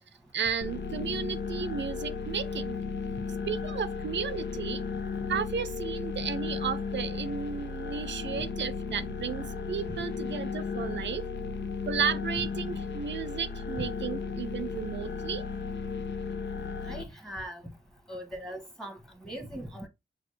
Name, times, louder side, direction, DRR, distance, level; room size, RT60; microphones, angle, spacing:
voice 1, 0.3-2.8 3.5-4.8 5.3-11.3 11.9-15.4, right 7 dB, 85° right, 0.5 m, -33 dB
sound 1, 0.6-17.0, left 5 dB, 75° left, 0.7 m, -35 dB
voice 2, 16.8-17.6 18.1-19.9, equal, ahead, 1.2 m, -40 dB
6.1 x 2.4 x 3.2 m
wide cardioid pair, 150°, 18 cm